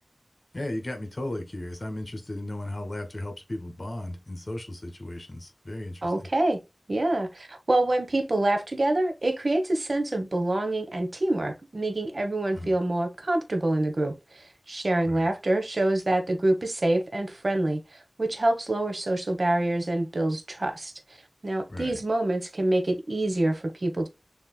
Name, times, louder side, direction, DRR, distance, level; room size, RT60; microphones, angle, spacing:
voice 1, 0.5-6.1 12.5-12.8 15.0-15.3 21.7-22.0, left 1 dB, 50° left, 1.9 m, -35 dB
voice 2, 6.0-6.6 6.9-20.9 21.4-24.1, right 1 dB, 70° right, 1.1 m, -26 dB
7.1 x 3.2 x 2.2 m
wide cardioid pair, 50°, 0 cm